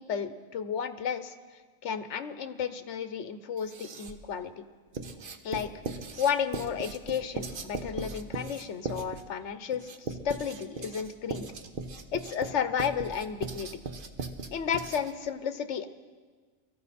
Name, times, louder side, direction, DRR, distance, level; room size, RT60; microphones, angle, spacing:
voice 1, 0.0-1.3 1.8-4.6 5.4-5.7 6.2-11.5 12.1-13.7 14.5-15.9, left 7 dB, 75° left, 11 dB, 1.1 m, -32 dB
Writing, 3.6-4.3 4.9-15.3, right 4 dB, 50° right, 1.0 m, -38 dB
23.0 x 14.0 x 4.3 m, 1.5 s
omnidirectional pair, 1.2 m